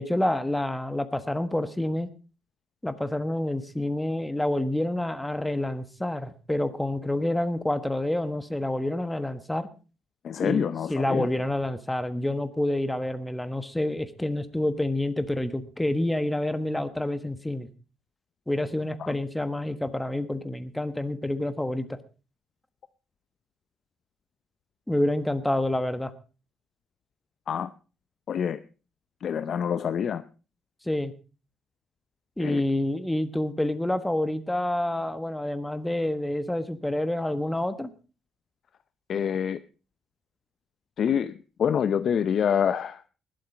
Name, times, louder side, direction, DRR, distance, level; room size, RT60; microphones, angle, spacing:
voice 1, 0.0-2.1 2.8-9.7 10.4-17.7 18.5-22.0 24.9-26.1 30.8-31.1 32.4-37.9, left 1 dB, 10° left, 11 dB, 1.4 m, -28 dB
voice 2, 10.2-11.3 19.0-19.2 27.5-27.7 28.3-28.6 29.2-30.2 32.4-32.6 39.1-39.6 41.0-43.1, left 8 dB, 60° left, 13 dB, 0.7 m, -26 dB
20.0 x 7.8 x 5.0 m, 0.35 s
cardioid pair, 90°, 0 cm